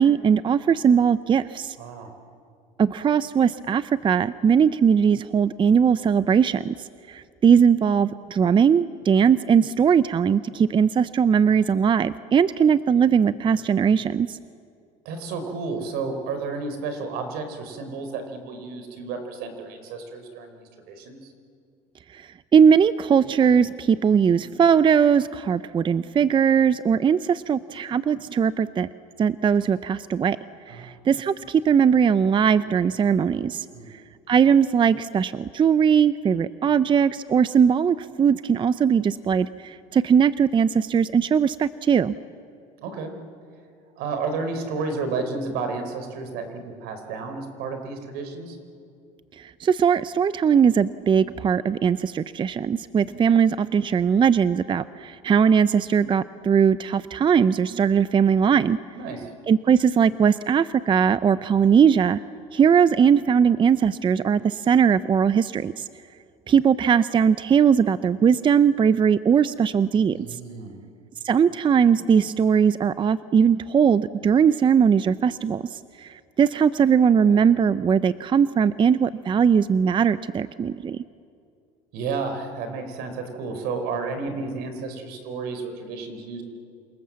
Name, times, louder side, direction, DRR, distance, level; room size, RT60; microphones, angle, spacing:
voice 1, 0.0-1.8 2.8-14.4 22.1-28.9 29.2-30.4 30.7-33.7 33.9-34.0 34.3-42.1 49.4-58.8 59.5-62.2 62.5-65.9 66.5-70.4 71.2-81.0, right 7 dB, 30° right, 14 dB, 0.6 m, -20 dB
voice 2, 1.8-2.1 15.0-21.3 30.7-30.9 33.7-33.9 42.8-43.1 44.0-48.6 58.9-59.3 70.1-70.8 81.9-86.4, right 4 dB, 70° right, 7 dB, 4.7 m, -32 dB
28.0 x 27.0 x 7.6 m, 2.5 s
supercardioid pair, 100°, 17 cm